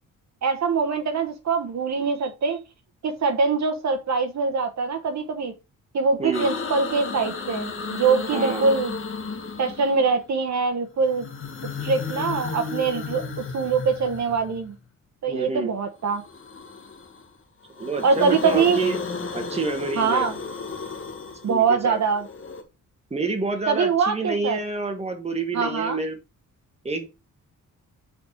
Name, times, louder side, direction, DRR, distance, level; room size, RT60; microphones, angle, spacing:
voice 1, 0.4-2.6 3.0-5.5 5.9-8.9 9.6-11.3 11.8-13.2 13.5-14.7 15.2-16.2 18.0-18.8 20.0-20.3 21.4-22.3 23.7-24.6 25.5-26.0, right 5 dB, 55° right, 1.2 m, -23 dB
sound 1, 6.3-10.3 11.0-14.8 16.1-17.3 17.6-22.6, left 4 dB, 40° left, 1.2 m, -33 dB
voice 2, 8.3-8.7 15.3-15.7 17.7-19.0 19.3-20.3 21.5-22.0 23.1-26.2 26.8-27.1, right 3 dB, 20° right, 1.3 m, -28 dB
6.2 x 4.2 x 4.4 m
wide cardioid pair, 160°, 33 cm